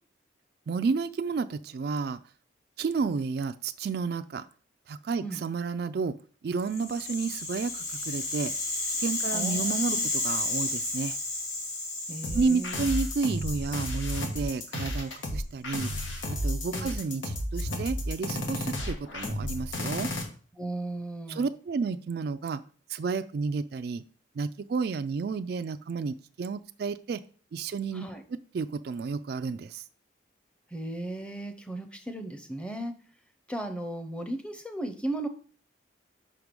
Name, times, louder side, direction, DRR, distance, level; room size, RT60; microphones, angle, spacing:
voice 1, 0.7-2.2 2.8-4.5 4.9-6.1 6.4-8.5 9.0-10.0 10.2-11.2 12.3-15.9 16.4-20.1 21.3-22.6 22.9-24.0 24.4-27.2 27.5-28.0 28.5-29.8, right 4 dB, 55° right, 11 dB, 0.3 m, -31 dB
Rattle (instrument), 6.7-14.9, left 2 dB, 40° left, 2.5 m, -33 dB
voice 2, 9.3-10.1 12.1-12.9 16.7-16.9 20.6-21.5 27.9-28.2 30.7-32.9 33.5-35.3, right 1 dB, 5° left, 7 dB, 0.7 m, -36 dB
sound 1, 12.2-20.2, left 1 dB, 90° left, 1.5 m, -32 dB
5.7 x 4.7 x 5.2 m, 0.42 s
head